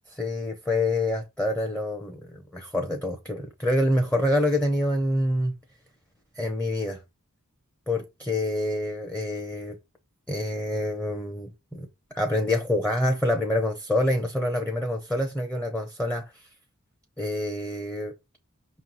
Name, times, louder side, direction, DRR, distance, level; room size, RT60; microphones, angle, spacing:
voice 1, 0.1-5.5 6.4-7.0 7.9-9.8 10.3-11.9 12.1-16.5 17.2-18.1, left 1 dB, 5° left, 0.7 m, -26 dB
5.9 x 3.1 x 5.3 m
head